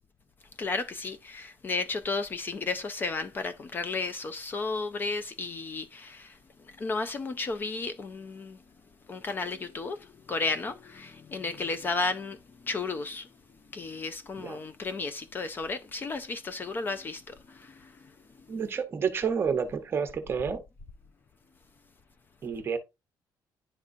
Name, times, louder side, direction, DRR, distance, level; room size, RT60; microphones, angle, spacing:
voice 1, 0.6-8.6 9.0-18.7, left 3 dB, 25° left, 0.4 m, -34 dB
voice 2, 18.5-20.6 22.4-22.8, right 6 dB, 30° right, 0.8 m, -29 dB
10.5 x 3.7 x 2.5 m
cardioid pair, 170°, 8 cm